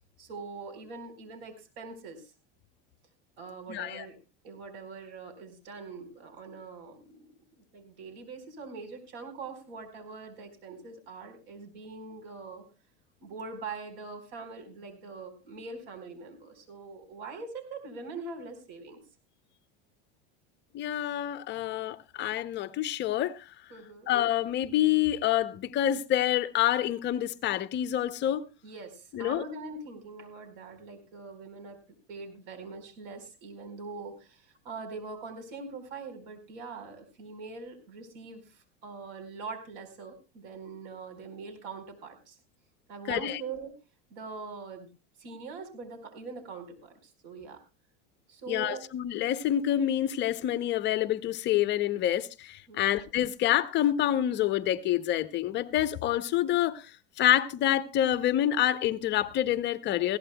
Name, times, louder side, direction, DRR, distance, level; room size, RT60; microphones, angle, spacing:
voice 1, 0.2-2.3 3.4-4.2 4.4-7.3 7.6-12.6 13.2-19.0 23.7-24.1 28.6-31.8 32.1-42.4 42.9-43.7 44.1-44.9 45.2-47.6 48.3-48.8 52.7-53.0, right 4 dB, 65° right, 4.5 m, -43 dB
voice 2, 3.7-4.1 20.7-23.4 24.1-28.4 29.1-29.4 43.1-43.4 48.5-56.9 57.2-60.2, left 12 dB, 35° left, 0.6 m, -27 dB
20.0 x 16.0 x 2.2 m
supercardioid pair, 135°, 30 cm